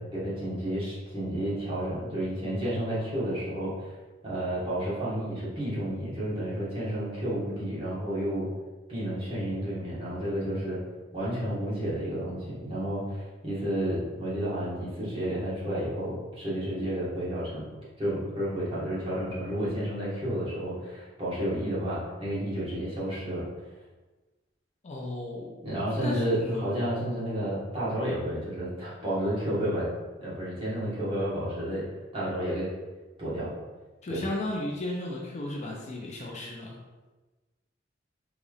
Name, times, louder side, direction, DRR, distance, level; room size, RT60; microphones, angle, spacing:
voice 1, 0.0-3.9 4.2-8.5 8.9-10.8 11.1-17.7 18.0-23.4 25.6-29.9 30.2-31.8 32.1-32.7 33.2-33.5 34.1-34.4, right 1 dB, 30° right, -8 dB, 1.3 m, -31 dB
voice 2, 24.8-26.6 34.0-36.8, left 1 dB, 35° left, -1 dB, 0.5 m, -35 dB
4.0 x 3.3 x 2.3 m, 1.2 s
head